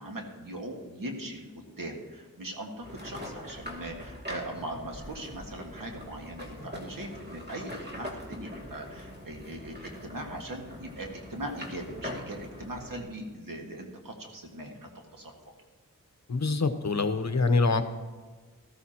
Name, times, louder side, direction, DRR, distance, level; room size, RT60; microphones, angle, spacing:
voice 1, 0.0-15.4, right 1 dB, 80° right, 1 dB, 1.9 m, -40 dB
sound 1, 2.8-13.0, left 1 dB, 30° right, 2.4 m, -42 dB
voice 2, 16.3-17.8, left 3 dB, 55° left, 9 dB, 0.9 m, -25 dB
14.0 x 14.0 x 2.9 m, 1.4 s
wide cardioid pair, 50°, 33 cm